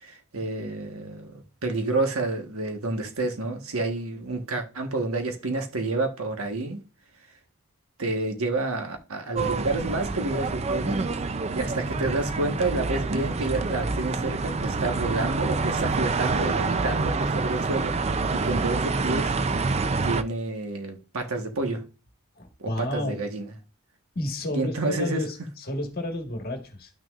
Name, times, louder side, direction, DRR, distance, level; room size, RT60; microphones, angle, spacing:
voice 1, 0.0-6.8 8.0-11.0 11.5-17.9 18.3-19.3 20.0-21.8 22.6-23.5 24.5-25.2, right 2 dB, 90° right, 1.3 m, -29 dB
sound 1, 9.3-20.2, right 3 dB, 30° right, 0.4 m, -27 dB
voice 2, 22.4-23.2 24.1-26.9, left 1 dB, 45° left, 1.5 m, -31 dB
11.5 x 6.2 x 2.5 m
head